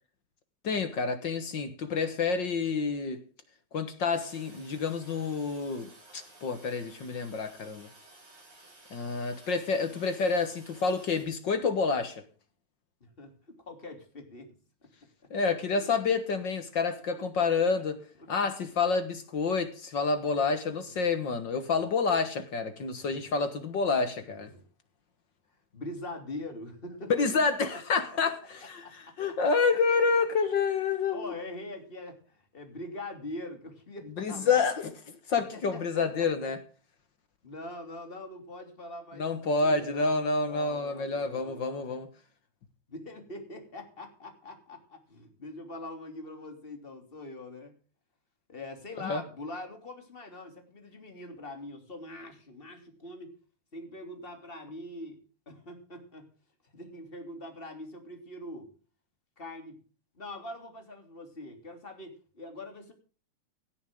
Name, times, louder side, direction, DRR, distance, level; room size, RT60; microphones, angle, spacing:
voice 1, 0.6-3.2 3.7-7.9 8.9-12.2 15.3-18.0 18.3-24.5 27.1-31.3 34.2-34.9 35.3-36.6 39.2-42.1 49.0-49.2, left 4 dB, 50° left, 1.6 m, -28 dB
Toilet flush, 4.1-11.2, right 2 dB, 60° right, 7.7 m, -55 dB
voice 2, 13.0-14.5 14.8-14.9 17.2-17.3 23.0-23.2 24.2-24.6 25.7-27.1 28.8-29.1 31.1-34.7 35.5-36.5 37.4-40.2 40.4-41.6 42.9-47.7 48.5-53.3 53.7-55.2 55.5-56.3 56.7-58.7 59.4-59.8 60.1-62.9, left 1 dB, 20° left, 3.0 m, -43 dB
18.0 x 13.5 x 3.7 m
omnidirectional pair, 3.3 m